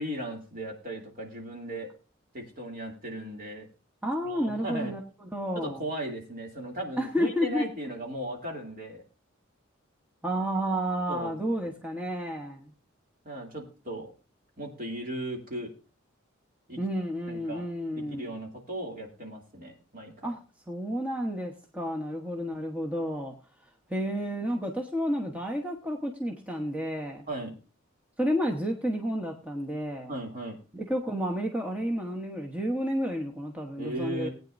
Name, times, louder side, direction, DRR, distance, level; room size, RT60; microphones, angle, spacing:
voice 1, 0.0-1.9 2.3-3.7 4.2-4.9 5.6-9.0 11.1-11.4 13.2-14.1 14.6-15.7 16.7-16.8 17.3-17.7 17.9-20.3 27.3-27.6 30.1-30.6 33.8-34.3, right 1 dB, 45° right, 1 dB, 2.6 m, -37 dB
voice 2, 4.0-5.8 7.0-7.6 10.2-12.7 16.8-18.3 20.2-20.4 20.7-23.3 23.9-27.3 28.2-30.1 30.7-34.3, equal, 5° right, 1 dB, 1.0 m, -31 dB
18.5 x 9.2 x 2.6 m, 0.33 s
head